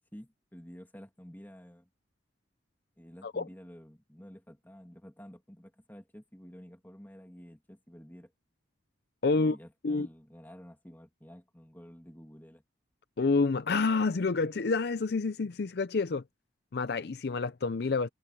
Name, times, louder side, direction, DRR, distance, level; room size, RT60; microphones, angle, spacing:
voice 1, 0.1-1.9 3.0-8.3 9.3-12.6, equal, 10° left, 2.7 m, -50 dB
voice 2, 9.2-9.6 9.8-10.1 13.2-16.2 16.7-18.1, left 4 dB, 55° left, 0.5 m, -28 dB
head